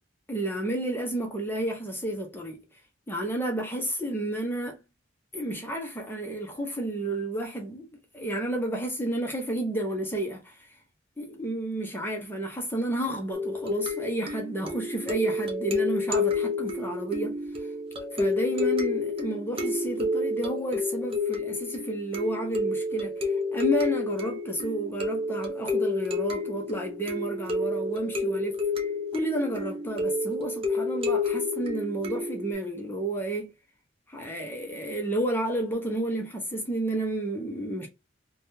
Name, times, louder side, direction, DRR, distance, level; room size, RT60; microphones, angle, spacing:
voice 1, 0.3-2.6 3.1-4.8 5.3-7.9 8.1-10.7 11.2-17.7 18.1-28.6 29.1-33.5 34.1-37.9, right 1 dB, 10° left, 0.7 m, -31 dB
sound 1, 13.3-32.5, left 3 dB, 30° right, 0.7 m, -30 dB
3.4 x 2.2 x 2.7 m
head